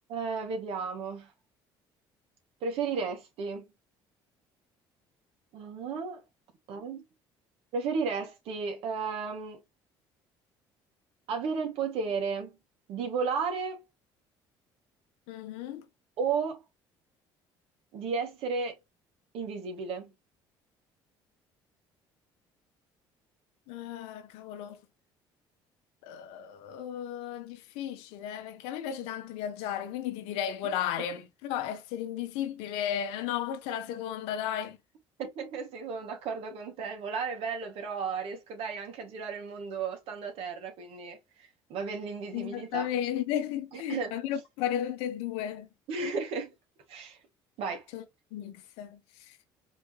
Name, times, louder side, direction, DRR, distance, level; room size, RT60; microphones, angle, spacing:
voice 1, 0.1-1.3 2.6-3.6 5.5-6.2 6.7-7.0 7.7-9.6 11.3-12.6 12.9-13.8 16.2-16.6 17.9-18.8 19.3-20.1 35.2-42.9 43.7-44.1 45.9-46.5 46.9-47.2 47.6-47.8, right 5 dB, 70° right, 2.0 m, -34 dB
voice 2, 15.3-15.8 23.7-24.8 26.0-34.8 42.3-45.7 47.9-48.0 48.3-49.0, left 10 dB, 80° left, 1.1 m, -34 dB
5.1 x 3.3 x 3.0 m
supercardioid pair, 80°, 10 cm